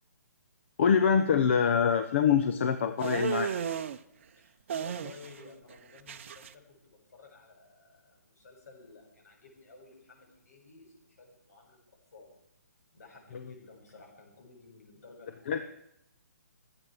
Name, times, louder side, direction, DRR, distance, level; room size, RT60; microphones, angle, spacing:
voice 1, 0.8-3.5 15.5-15.7, left 7 dB, 45° left, 8 dB, 0.9 m, -25 dB
sound 1, 3.0-4.0 4.7-5.4 5.7-6.5, right 8 dB, 45° right, 0.8 m, -34 dB
voice 2, 4.8-12.3 12.9-15.7, left 4 dB, 65° left, 0 dB, 7.3 m, -54 dB
25.0 x 8.9 x 5.1 m, 0.79 s
hypercardioid pair, 160°, 9 cm